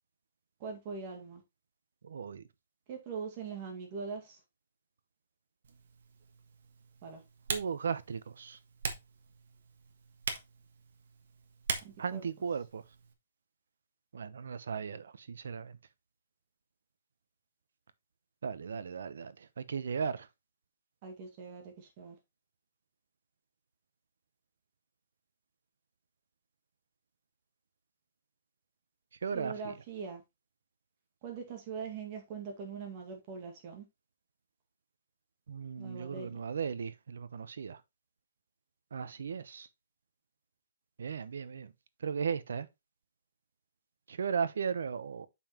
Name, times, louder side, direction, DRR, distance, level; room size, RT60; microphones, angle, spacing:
voice 1, 0.6-1.4 2.9-4.4 7.0-7.2 11.8-12.3 21.0-22.2 29.3-30.2 31.2-33.9 35.8-36.4, right 5 dB, 30° right, 1.9 m, -42 dB
voice 2, 2.0-2.4 7.5-8.6 12.0-12.8 14.1-15.7 18.4-20.3 29.2-29.5 35.5-37.8 38.9-39.7 41.0-41.7 42.0-42.7 44.1-45.3, right 6 dB, 80° right, 0.8 m, -36 dB
Typing, 5.6-13.1, right 5 dB, 65° right, 1.4 m, -42 dB
7.0 x 5.5 x 2.9 m
hypercardioid pair, 170°, 0 cm